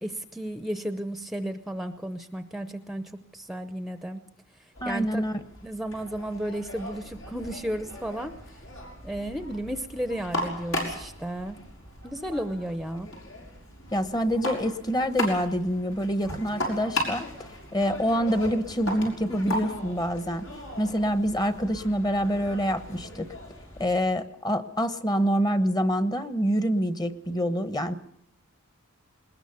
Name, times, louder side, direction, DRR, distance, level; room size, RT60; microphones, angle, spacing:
voice 1, 0.0-4.2 4.6-5.2 5.6-8.6 9.0-11.6 12.0-13.1 19.3-19.9, right 1 dB, ahead, 9 dB, 0.8 m, -33 dB
sound 1, 4.7-24.0, left 1 dB, 80° left, 6.2 m, -37 dB
voice 2, 4.8-5.4 13.9-17.3 17.7-20.4 20.8-23.3 23.8-28.0, equal, 20° left, 12 dB, 1.1 m, -26 dB
21.0 x 20.5 x 7.0 m, 0.71 s
head